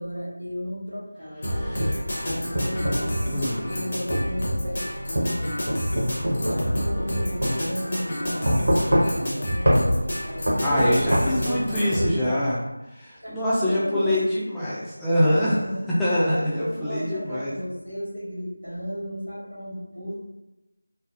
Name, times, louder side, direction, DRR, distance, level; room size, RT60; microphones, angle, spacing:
voice 1, 0.0-1.6 2.2-5.9 6.3-12.4 13.2-14.2 15.2-15.9 16.3-20.1, equal, 85° right, -6 dB, 1.4 m, -34 dB
sound 1, 1.4-12.1, equal, 35° left, 0.6 m, -29 dB
voice 2, 1.5-1.9 3.3-3.6 10.6-12.5 13.0-15.6 16.0-17.5, equal, 5° left, -12 dB, 0.3 m, -24 dB
sound 2, 1.6-3.1 4.1-4.3 5.2-7.1 7.4-7.6 8.5-9.3 9.7-9.8 10.5-11.2, equal, 65° right, 0.7 m, -23 dB
3.2 x 2.0 x 2.4 m, 0.99 s
figure-of-eight pair, 165°, 0 cm